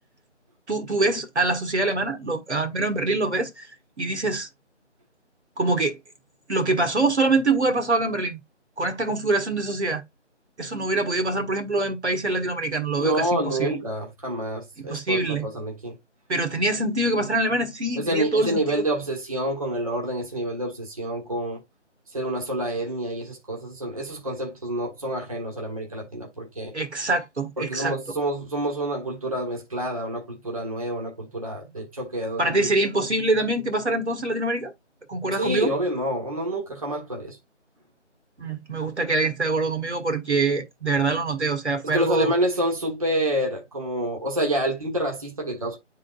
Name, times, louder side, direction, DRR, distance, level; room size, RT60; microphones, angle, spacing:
voice 1, 0.7-3.7 4.0-4.5 5.6-6.0 6.5-8.4 8.8-10.0 10.6-13.8 14.8-15.5 16.3-18.8 26.7-28.0 32.4-34.7 35.1-35.7 38.4-42.3, right 2 dB, 65° right, 1.6 m, -24 dB
voice 2, 13.0-16.0 17.9-21.6 22.1-26.7 27.6-32.7 35.4-37.4 41.8-45.8, right 1 dB, 30° right, 1.2 m, -28 dB
10.5 x 3.8 x 2.4 m
figure-of-eight pair, 170°, 36 cm